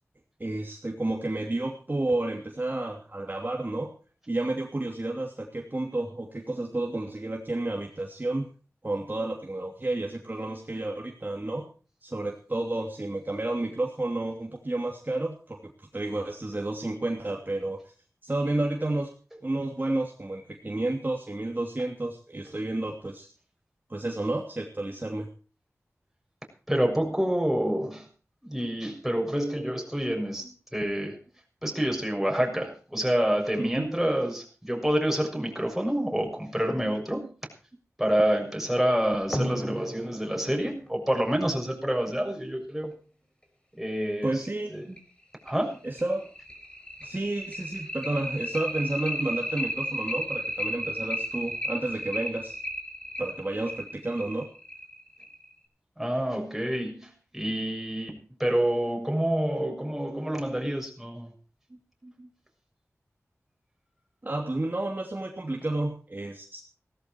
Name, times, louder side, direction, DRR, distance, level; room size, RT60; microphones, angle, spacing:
voice 1, 0.4-3.9 4.3-8.5 8.8-11.7 12.0-17.8 18.2-19.1 19.4-23.3 23.9-25.3 33.6-33.9 44.2-45.0 45.8-46.3 47.0-52.6 53.2-54.5 62.0-62.3 64.2-66.6, right 2 dB, 35° right, 1 dB, 2.8 m, -31 dB
voice 2, 26.7-28.0 28.4-30.4 30.7-31.2 31.6-37.3 38.0-42.9 43.8-44.5 44.7-44.9 45.4-45.8 56.0-61.3, right 1 dB, 5° right, 1 dB, 6.8 m, -27 dB
sound 1, 39.3-42.5 43.9-44.0 44.4-44.5 45.0-45.1 45.5-55.5, equal, 15° left, 5.5 m, -34 dB
18.0 x 14.0 x 4.6 m, 0.38 s
wide cardioid pair, 60°, 5 cm